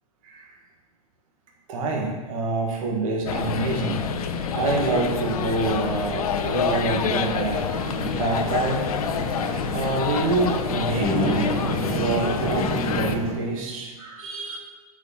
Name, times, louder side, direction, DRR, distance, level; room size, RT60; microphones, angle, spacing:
voice 1, 0.2-0.6 1.7-8.9 9.7-11.5 11.9-14.6, right 3 dB, 60° right, 0 dB, 1.5 m, -27 dB
sound 1, 3.3-13.2, left 6 dB, 70° left, 0.7 m, -27 dB
sound 2, 7.7-13.3, equal, 35° right, 2.5 m, -29 dB
8.1 x 4.9 x 4.4 m, 1.3 s
hypercardioid pair, 110°, 19 cm